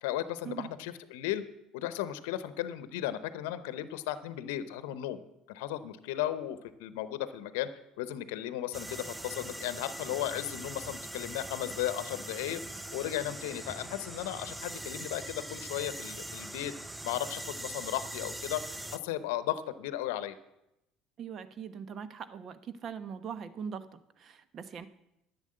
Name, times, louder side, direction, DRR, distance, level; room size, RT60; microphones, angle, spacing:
voice 1, 0.0-1.4 1.7-5.2 5.5-7.7 8.0-12.6 12.9-16.7 17.0-20.4, left 13 dB, 80° left, 13 dB, 0.8 m, -35 dB
sound 1, 8.7-19.0, right 1 dB, 10° right, 0.7 m, -42 dB
voice 2, 21.2-24.9, right 7 dB, 50° right, 13 dB, 1.0 m, -41 dB
11.0 x 8.1 x 7.7 m, 0.85 s
hypercardioid pair, 75°, 0 cm